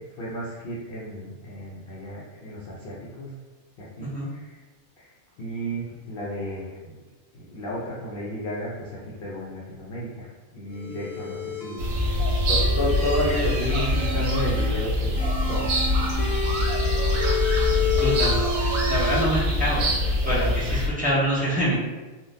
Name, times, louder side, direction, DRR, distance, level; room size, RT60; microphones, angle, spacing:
voice 1, 0.2-3.3 3.8-4.6 5.0-5.1 5.4-7.0 7.3-11.8 12.5-15.2 15.5-16.2 16.6-17.0 17.7-18.2, equal, 60° left, -6 dB, 0.6 m, -32 dB
sound 1, 10.7-14.7 15.2-19.2, left 4 dB, 90° left, 1.1 m, -30 dB
sound 2, 11.8-20.9, left 1 dB, 85° right, 1.1 m, -24 dB
voice 2, 18.0-18.4 18.9-19.8 20.2-21.8, equal, 15° right, -9 dB, 0.3 m, -25 dB
3.6 x 2.2 x 2.6 m, 1.3 s
omnidirectional pair, 1.4 m